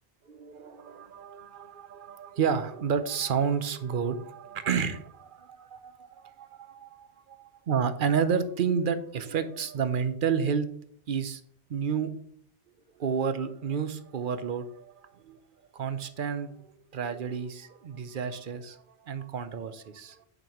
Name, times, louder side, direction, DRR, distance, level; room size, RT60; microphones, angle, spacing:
voice 1, 0.3-7.4 7.7-10.7 11.1-11.4 11.7-12.1 13.0-15.4 15.7-20.3, right 6 dB, 60° right, 11 dB, 0.8 m, -30 dB
9.1 x 5.4 x 3.0 m, 0.65 s
omnidirectional pair, 1.1 m